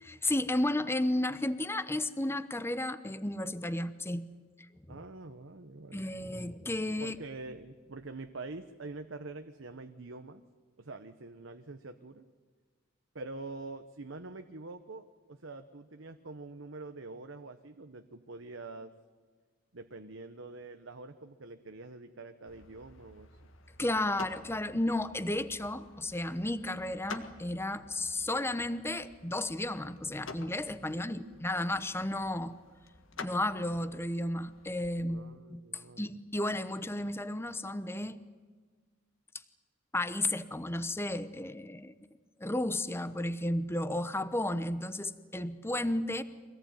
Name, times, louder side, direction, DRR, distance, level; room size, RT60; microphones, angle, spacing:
voice 1, 0.0-4.3 4.9-5.0 5.9-7.2 23.8-32.6 33.2-38.2 39.9-41.9 42.4-46.2, left 1 dB, 10° left, 13 dB, 1.0 m, -33 dB
voice 2, 4.9-6.1 7.0-10.4 10.8-12.2 13.1-18.9 19.7-23.4 30.8-31.7 35.0-36.1, right 3 dB, 65° right, 7 dB, 1.1 m, -45 dB
sound 1, 22.5-35.0, left 4 dB, 75° left, 1.8 m, -50 dB
25.0 x 18.0 x 9.4 m, 1.5 s
head